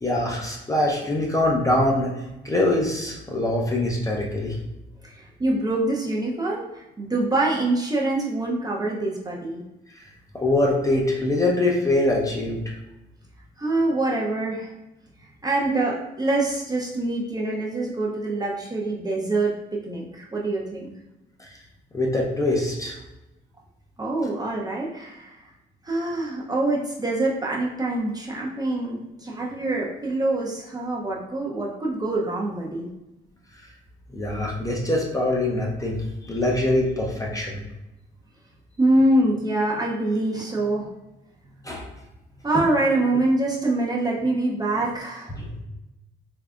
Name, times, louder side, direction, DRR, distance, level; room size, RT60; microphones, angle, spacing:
voice 1, 0.0-4.6 9.9-10.0 10.4-12.6 21.4-21.6 21.9-23.0 34.1-37.6 41.6-41.9 45.4-45.5, left 1 dB, 15° left, -2 dB, 0.7 m, -23 dB
voice 2, 5.0-9.6 13.6-14.7 15.4-20.9 24.0-25.4 25.8-32.9 38.8-40.9 42.4-45.3, right 2 dB, 20° right, -3 dB, 0.6 m, -25 dB
3.6 x 3.2 x 2.4 m, 0.96 s
cardioid pair, 90°, 20 cm